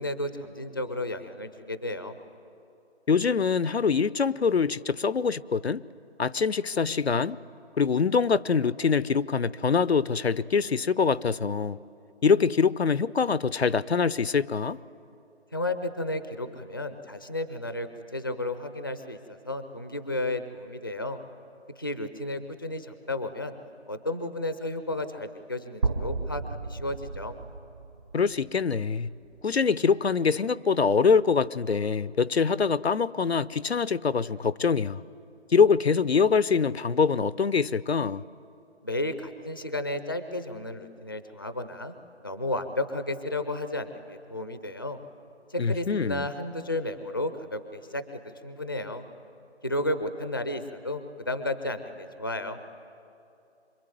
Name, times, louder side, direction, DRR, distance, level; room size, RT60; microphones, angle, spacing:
voice 1, 0.0-2.1 15.5-21.2 21.8-23.5 23.9-26.4 26.7-27.3 38.8-41.9 42.2-45.0 45.5-49.0 49.6-52.6, left 1 dB, 20° left, 0.6 m, -33 dB
voice 2, 3.1-5.8 6.2-7.4 7.8-11.8 12.2-14.8 28.1-29.1 29.4-35.0 35.5-38.2 45.6-46.3, left 5 dB, 65° left, 0.6 m, -24 dB
sound 1, 25.8-29.8, right 4 dB, 20° right, 0.8 m, -34 dB
26.0 x 24.0 x 9.3 m
figure-of-eight pair, 160°, 34 cm